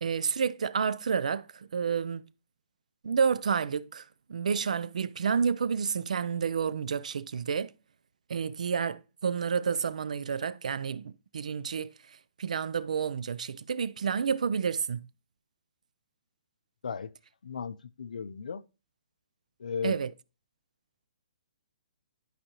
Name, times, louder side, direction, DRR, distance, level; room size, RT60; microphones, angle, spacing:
voice 1, 0.0-2.2 3.0-4.0 4.3-7.7 8.3-11.9 12.4-15.0 19.8-20.1, right 6 dB, 70° right, 0.5 m, -30 dB
voice 2, 17.4-18.6 19.6-20.0, left 6 dB, 85° left, 0.6 m, -35 dB
11.5 x 5.0 x 3.0 m
hypercardioid pair, 175°, 4 cm